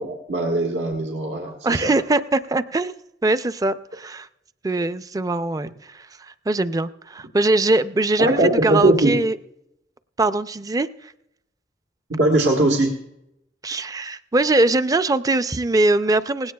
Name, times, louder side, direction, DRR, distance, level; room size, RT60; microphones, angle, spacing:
voice 1, 0.0-1.9 8.2-9.2 12.1-12.9, right 1 dB, 85° right, 0 dB, 1.5 m, -20 dB
voice 2, 1.6-2.9 3.2-4.3 4.6-9.4 10.2-11.1 13.6-16.5, right 2 dB, 20° right, 12 dB, 0.4 m, -22 dB
18.5 x 16.5 x 2.3 m, 0.83 s
head